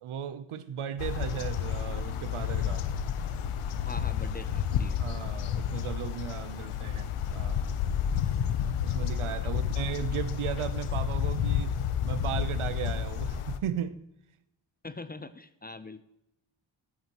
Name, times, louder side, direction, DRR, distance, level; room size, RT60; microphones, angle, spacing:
voice 1, 0.0-2.9 4.9-7.7 8.8-14.0, right 9 dB, 75° right, 0.9 m, -36 dB
sound 1, 1.0-13.6, left 8 dB, 90° left, 0.9 m, -30 dB
voice 2, 3.8-5.0 14.8-16.0, left 3 dB, 20° left, 0.7 m, -43 dB
14.0 x 11.5 x 3.1 m
cardioid pair, 55°, 50 cm